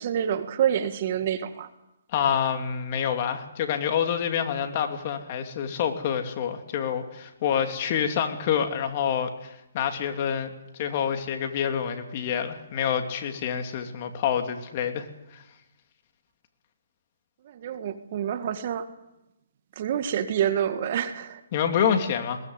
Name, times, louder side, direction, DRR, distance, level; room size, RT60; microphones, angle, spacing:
voice 1, 0.0-1.7 17.5-18.9 19.8-21.4, right 9 dB, 45° right, 10 dB, 1.8 m, -27 dB
voice 2, 2.1-15.1 15.3-15.4 21.5-22.4, left 8 dB, 40° left, 5 dB, 2.8 m, -27 dB
21.5 x 18.5 x 8.1 m, 0.90 s
hypercardioid pair, 145°, 0 cm